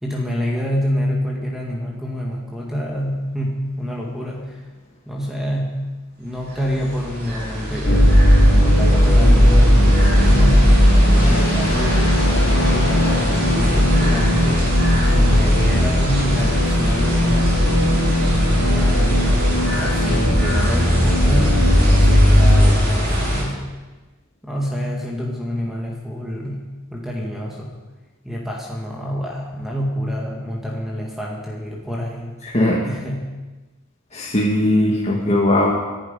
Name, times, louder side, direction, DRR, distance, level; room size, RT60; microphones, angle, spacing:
voice 1, 0.0-4.7 5.1-5.9 6.2-19.2 19.8-21.6 22.0-23.6 24.4-27.7 28.2-32.3 32.8-33.3, equal, ahead, -2 dB, 1.9 m, -27 dB
sound 1, 6.3-23.4, equal, 50° right, 6.2 m, -23 dB
sound 2, 7.8-22.7, equal, 70° left, 3.6 m, -16 dB
voice 2, 32.4-32.8 34.1-35.7, left 1 dB, 30° left, -3 dB, 1.9 m, -18 dB
24.0 x 11.5 x 5.3 m, 1.2 s
head